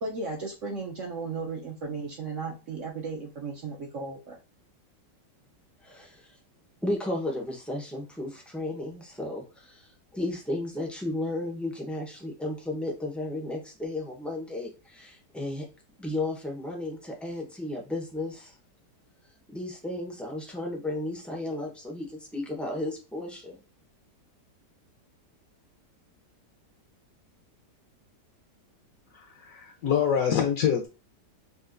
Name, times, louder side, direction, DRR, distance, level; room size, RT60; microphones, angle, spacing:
voice 1, 0.0-4.4, right 4 dB, 60° right, -1 dB, 0.8 m, -35 dB
voice 2, 5.8-6.3 6.8-15.7 16.0-18.5 19.5-23.6, left 1 dB, ahead, -1 dB, 0.3 m, -34 dB
voice 3, 29.1-30.9, left 8 dB, 65° left, 2 dB, 1.0 m, -26 dB
5.4 x 2.5 x 2.5 m, 0.31 s
omnidirectional pair, 1.9 m